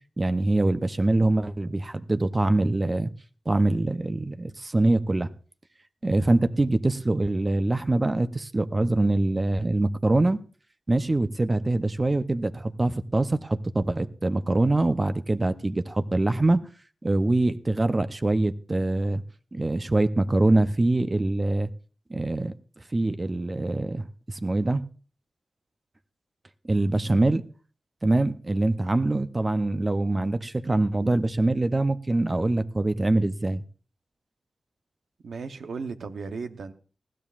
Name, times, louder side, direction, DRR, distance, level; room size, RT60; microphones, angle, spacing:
voice 1, 0.2-3.1 3.5-5.3 6.0-10.4 10.9-16.6 17.0-19.2 19.5-21.7 22.1-22.5 22.9-24.8 26.7-27.4 28.0-33.6, right 2 dB, 35° right, 0.7 m, -24 dB
voice 2, 35.2-36.7, right 4 dB, 85° right, 0.8 m, -35 dB
20.0 x 14.0 x 2.5 m
cardioid pair, 50°, 0 cm